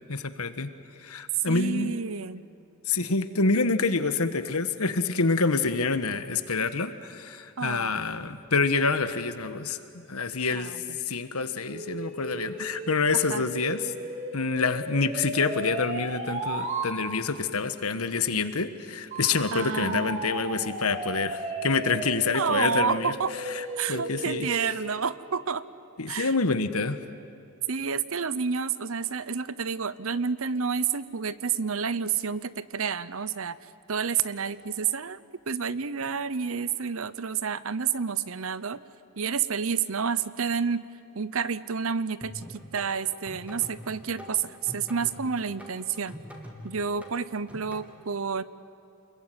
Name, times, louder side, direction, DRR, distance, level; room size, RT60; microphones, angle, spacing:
voice 1, 0.1-0.7 1.0-2.0 2.9-10.7 11.1-13.9 14.3-23.1 23.5-24.5 26.0-27.0, left 4 dB, 80° left, 11 dB, 1.4 m, -27 dB
voice 2, 1.5-2.4 7.6-8.0 10.5-11.0 13.1-13.4 19.5-20.0 22.3-23.3 23.8-25.6 26.1-26.3 27.7-33.6 33.9-35.2 35.5-38.8 39.2-40.9 41.1-46.2 46.6-48.4, right 6 dB, 65° right, 16 dB, 0.8 m, -29 dB
sound 1, 11.7-16.9 19.1-25.0, right 2 dB, 30° right, 2.4 m, -35 dB
sound 2, 42.2-47.8, equal, 5° right, 3.2 m, -44 dB
29.0 x 21.5 x 9.3 m, 2.8 s
head